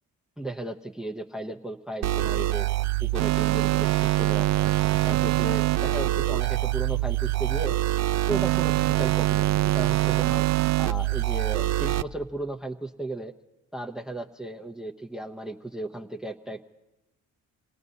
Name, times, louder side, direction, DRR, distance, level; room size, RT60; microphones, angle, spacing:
voice 1, 0.4-2.7 3.0-4.7 5.1-7.8 8.3-10.5 10.8-13.3 13.7-16.6, right 2 dB, ahead, 3 dB, 0.7 m, -35 dB
sound 1, 2.0-12.0, right 16 dB, 65° right, 0.4 m, -24 dB
28.5 x 18.0 x 2.7 m, 1.0 s
cardioid pair, 90°, 30 cm